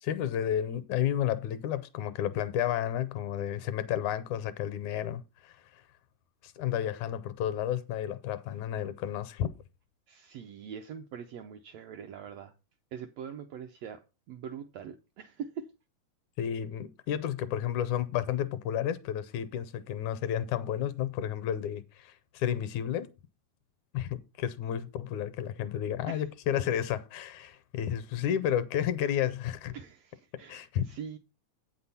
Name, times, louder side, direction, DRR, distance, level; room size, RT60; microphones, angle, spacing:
voice 1, 0.0-5.5 6.4-9.5 16.4-23.1 23.9-29.7 30.5-30.8, left 10 dB, 75° left, 2.0 m, -31 dB
voice 2, 10.1-12.5 12.9-14.0 14.3-15.7 26.1-26.3 29.7-31.2, right 7 dB, 80° right, 1.5 m, -43 dB
8.6 x 6.0 x 5.5 m
omnidirectional pair, 3.6 m